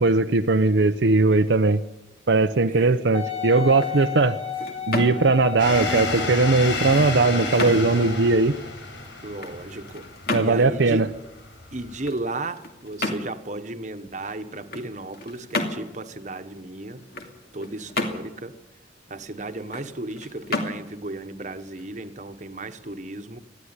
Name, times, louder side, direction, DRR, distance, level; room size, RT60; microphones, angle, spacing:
voice 1, 0.0-1.8 2.3-4.4 4.9-8.5 10.3-11.1, right 3 dB, 80° right, 0.7 m, -19 dB
voice 2, 2.7-3.0 9.2-10.1 10.4-11.1 11.7-17.0 17.5-18.6 19.1-23.4, right 2 dB, 40° right, 1.2 m, -34 dB
Wind instrument woodwind instrument, 3.1-7.5 8.1-8.2, left 9 dB, 35° left, 5.4 m, -33 dB
sound 1, 3.6-22.4, left 2 dB, 55° left, 2.5 m, -35 dB
sound 2, 5.6-12.0, left 2 dB, 85° left, 4.9 m, -31 dB
20.0 x 13.5 x 9.7 m
head